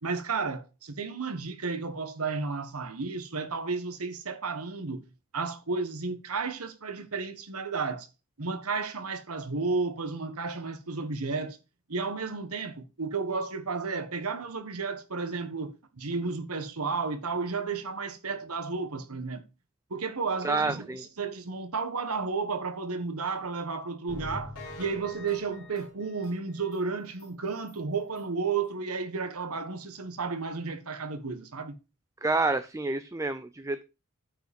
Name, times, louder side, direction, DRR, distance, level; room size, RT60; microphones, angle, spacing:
voice 1, 0.0-5.0 5.3-8.1 8.4-11.6 11.9-19.4 19.9-20.8 21.2-31.8, right 4 dB, 90° right, 1.3 m, -32 dB
voice 2, 20.4-21.0 32.2-33.8, right 3 dB, 15° right, 0.4 m, -28 dB
sound 1, 24.1-26.8 27.2-27.3 27.7-27.8 28.2-28.3, left 1 dB, 75° left, 3.4 m, -43 dB
9.1 x 5.1 x 5.2 m
head